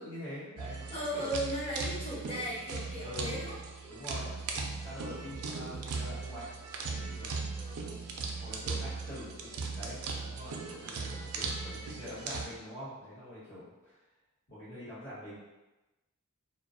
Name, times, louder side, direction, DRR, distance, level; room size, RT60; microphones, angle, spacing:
voice 1, 0.0-1.3 2.9-3.5 3.9-4.3 4.7-6.6 6.8-7.5 8.4-14.0 14.5-15.4, left 1 dB, 60° left, -12 dB, 1.2 m, -45 dB
sound 1, 0.6-12.5, right 4 dB, 80° right, 0.3 m, -38 dB
voice 2, 0.9-3.6 7.6-8.1, equal, 25° left, -7 dB, 0.7 m, -37 dB
2.4 x 2.0 x 2.5 m, 1.1 s
head